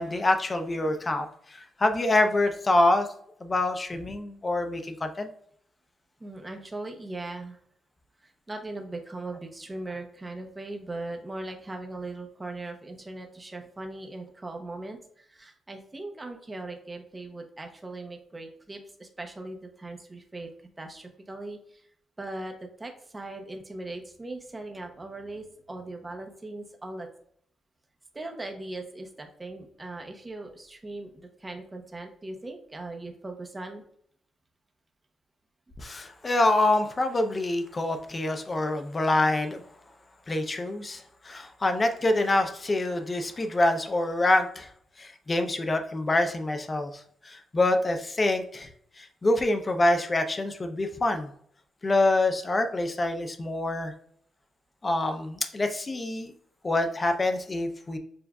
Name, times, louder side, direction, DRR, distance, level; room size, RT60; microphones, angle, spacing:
voice 1, 0.0-3.1 3.4-5.3 35.8-39.6 40.3-44.7 45.0-46.9 47.3-48.7 49.0-51.3 51.8-53.9 54.8-56.3 56.6-58.0, left 2 dB, 25° left, 6 dB, 0.5 m, -26 dB
voice 2, 6.2-7.6 8.2-20.5 20.8-21.9 22.2-27.1 28.1-33.8, right 2 dB, 15° right, 3 dB, 0.8 m, -39 dB
6.9 x 2.5 x 2.3 m, 0.65 s
cardioid pair, 130°, 0 cm